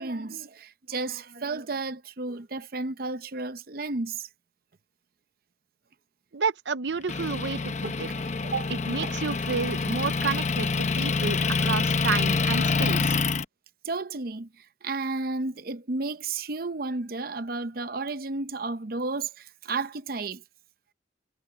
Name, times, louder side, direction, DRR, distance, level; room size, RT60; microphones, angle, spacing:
voice 1, 0.0-4.3 8.4-8.7 9.0-9.1 13.8-20.4, right 3 dB, 55° right, 0.8 m, -32 dB
voice 2, 6.3-8.1 8.7-13.2, right 5 dB, 90° right, 0.8 m, -30 dB
Motor vehicle (road) / Engine, 7.1-13.4, left 4 dB, 40° left, 0.9 m, -26 dB
head